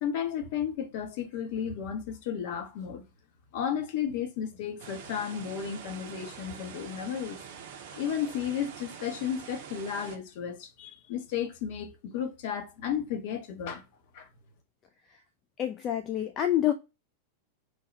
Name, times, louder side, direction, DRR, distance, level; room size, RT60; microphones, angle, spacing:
voice 1, 0.0-3.0 3.5-7.4 7.9-13.8 14.1-14.3, left 8 dB, 50° left, 0.8 m, -33 dB
sound 1, 4.8-10.2, right 7 dB, 50° right, 0.6 m, -45 dB
voice 2, 15.6-16.7, left 12 dB, 30° left, 0.4 m, -27 dB
3.2 x 2.3 x 3.9 m
figure-of-eight pair, 90°, 0 cm